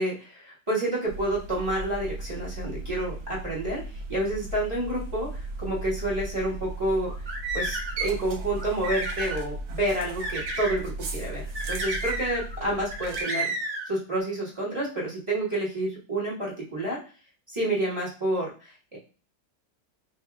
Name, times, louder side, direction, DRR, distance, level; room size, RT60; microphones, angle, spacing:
voice 1, 0.0-3.8 4.1-5.3 5.6-7.1 7.5-13.5 13.8-17.0 17.5-18.5 18.9-19.0, right 1 dB, 15° right, -7 dB, 1.5 m, -29 dB
sound 1, 1.1-13.2, right 2 dB, 75° right, 1.5 m, -37 dB
sound 2, 7.0-8.0 8.6-9.4 10.2-10.8 11.5-12.5 12.9-13.9, right 2 dB, 50° right, 2.0 m, -32 dB
5.3 x 3.0 x 2.3 m, 0.35 s
omnidirectional pair, 2.2 m